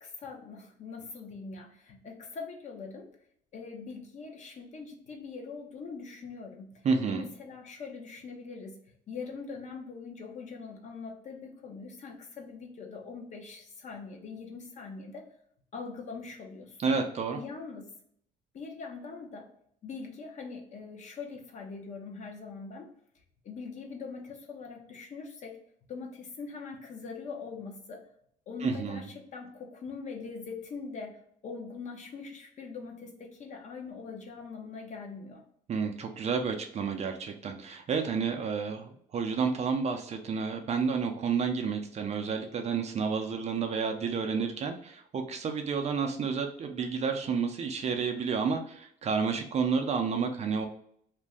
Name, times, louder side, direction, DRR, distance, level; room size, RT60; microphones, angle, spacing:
voice 1, 0.0-3.1 3.5-6.8 7.1-8.8 9.1-15.3 15.7-16.9 17.3-17.9 18.5-19.5 19.8-22.9 23.4-25.6 25.9-28.1 28.5-35.4, left 4 dB, 45° left, 2 dB, 0.7 m, -42 dB
voice 2, 6.8-7.3 16.8-17.4 28.6-29.1 35.7-50.7, right 5 dB, 40° right, 4 dB, 0.5 m, -30 dB
2.5 x 2.2 x 3.4 m, 0.67 s
cardioid pair, 110°, 17 cm